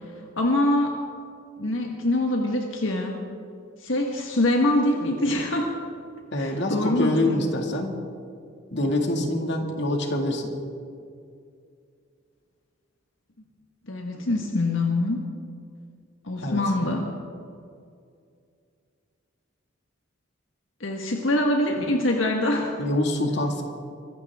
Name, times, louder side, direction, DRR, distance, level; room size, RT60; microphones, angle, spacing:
voice 1, 0.4-0.9 1.6-3.2 3.8-5.7 6.4-7.5 13.9-15.2 16.2-17.1 20.8-22.7, left 1 dB, 80° left, 1 dB, 1.5 m, -24 dB
voice 2, 6.3-8.0 8.7-10.5 16.4-16.6 22.8-23.6, left 1 dB, 60° left, 2 dB, 2.2 m, -25 dB
24.5 x 15.5 x 3.6 m, 2.3 s
head